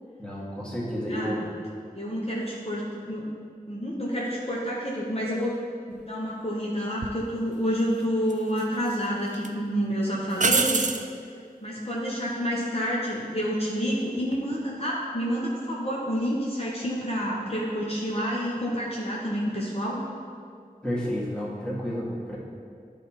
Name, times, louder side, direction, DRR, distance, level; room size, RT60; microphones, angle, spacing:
voice 1, 0.2-1.5 20.8-22.4, equal, 5° left, -6 dB, 1.8 m, -31 dB
voice 2, 1.1-1.5 1.9-3.3 3.7-5.5 6.1-10.9 11.6-20.0, equal, 40° left, -5 dB, 1.1 m, -29 dB
sound 1, 7.0-7.2 8.3-8.9 9.3-9.5 10.4-11.1 14.2-14.6, right 4 dB, 55° right, 0.4 m, -25 dB
10.5 x 3.6 x 4.4 m, 2.3 s
wide cardioid pair, 45°, 15 cm